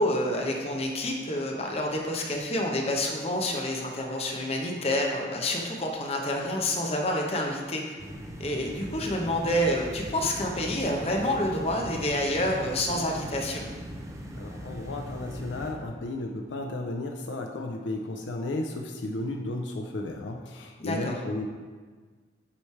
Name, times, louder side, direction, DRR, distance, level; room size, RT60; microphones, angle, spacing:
voice 1, 0.0-8.0 8.4-13.6 20.8-21.1, left 1 dB, 35° left, 0 dB, 0.8 m, -28 dB
sound 1, 8.0-15.7, equal, 15° right, 0.5 m, -39 dB
voice 2, 14.4-21.5, left 2 dB, 75° left, 2 dB, 0.5 m, -34 dB
8.5 x 3.2 x 4.6 m, 1.5 s
head